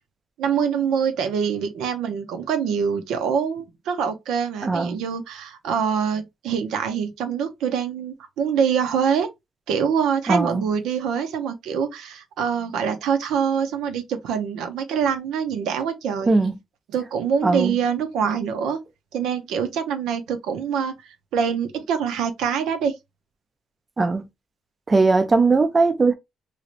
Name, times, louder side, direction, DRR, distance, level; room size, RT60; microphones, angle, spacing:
voice 1, 0.4-9.3 9.7-16.3 16.9-18.8 19.1-22.9, right 7 dB, 85° right, 0.6 m, -25 dB
voice 2, 4.6-5.0 10.3-10.7 16.3-16.6 17.4-17.8 24.0-24.3 24.9-26.1, right 3 dB, 30° right, 0.6 m, -19 dB
3.1 x 2.7 x 2.5 m
cardioid pair, 90°, 0 cm